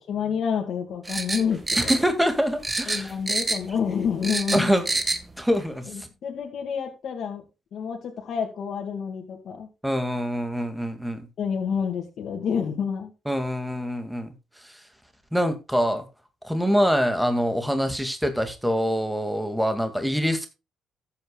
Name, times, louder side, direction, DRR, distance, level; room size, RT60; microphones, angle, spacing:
voice 1, 0.0-1.9 2.9-5.0 5.9-7.4 7.7-9.7 11.4-13.1, left 7 dB, 65° left, 1 dB, 2.4 m, -29 dB
sound 1, 1.0-2.4 2.6-3.8 4.0-5.2 5.5-5.6, right 2 dB, 20° right, 1.7 m, -27 dB
voice 2, 1.8-3.1 4.5-4.8 5.4-6.1 9.8-11.3 13.3-14.3 14.6-14.7 15.3-16.0 16.4-20.5, equal, ahead, 7 dB, 2.3 m, -24 dB
14.5 x 8.6 x 2.4 m, 0.27 s
cardioid pair, 90°, 0 cm